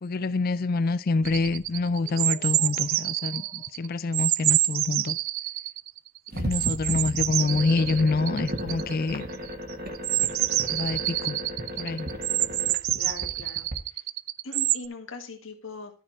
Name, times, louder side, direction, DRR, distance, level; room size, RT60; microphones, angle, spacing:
voice 1, 0.0-5.2 6.3-9.2 10.7-11.4 11.8-12.1, left 3 dB, 45° left, 0.4 m, -26 dB
sound 1, 1.2-3.8 4.1-4.2, equal, 25° right, 2.2 m, -52 dB
sound 2, 1.2-3.9 4.1-14.9, right 17 dB, 65° right, 0.3 m, -27 dB
voice 2, 6.3-6.7 12.3-14.0 14.4-16.0, left 3 dB, 65° left, 1.8 m, -42 dB
sound 3, 6.3-13.8, equal, 45° right, 1.5 m, -35 dB
13.0 x 4.5 x 4.6 m
head